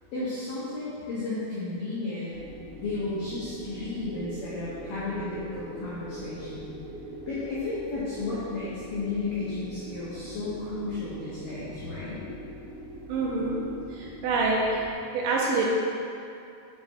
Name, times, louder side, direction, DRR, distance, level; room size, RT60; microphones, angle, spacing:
voice 1, 0.1-2.4 2.8-6.7 7.3-12.3, left 3 dB, 80° left, -10 dB, 1.9 m, -33 dB
sound 1, 2.3-14.9, equal, 65° left, 2.2 m, -44 dB
sound 2, 3.2-9.8, right 2 dB, 60° right, 2.3 m, -44 dB
voice 2, 13.1-13.6 13.9-14.9 15.1-15.7, right 3 dB, 80° right, -3 dB, 2.8 m, -26 dB
8.7 x 7.0 x 2.3 m, 2.6 s
omnidirectional pair, 5.6 m